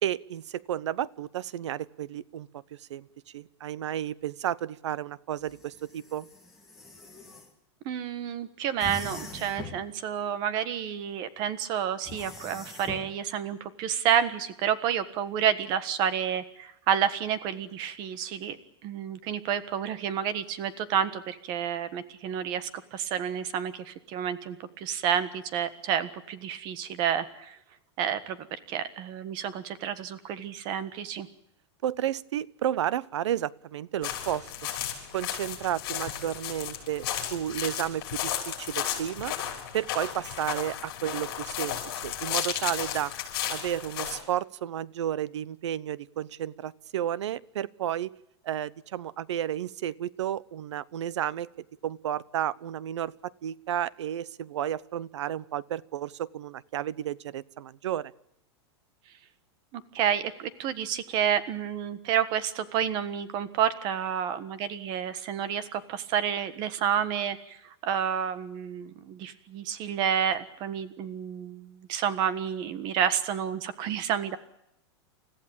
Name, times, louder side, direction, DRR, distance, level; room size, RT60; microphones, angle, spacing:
voice 1, 0.0-3.1 3.3-6.3 31.8-34.5 35.1-39.3 39.7-43.1 43.5-48.1 48.4-51.5 51.8-58.1, right 11 dB, 90° right, 22 dB, 0.9 m, -32 dB
Sci-Fi sliding door (height adjustable chair sounds), 5.4-7.5 8.8-9.9 12.0-13.1, left 2 dB, ahead, 2.7 m, -42 dB
voice 2, 7.8-18.6 18.8-27.6 28.0-31.3 59.7-67.6 67.8-74.4, right 9 dB, 30° right, 14 dB, 1.5 m, -30 dB
sound 1, 34.0-44.2, left 11 dB, 45° left, 7.0 m, -34 dB
29.5 x 15.0 x 8.9 m, 0.80 s
supercardioid pair, 175°, 14 cm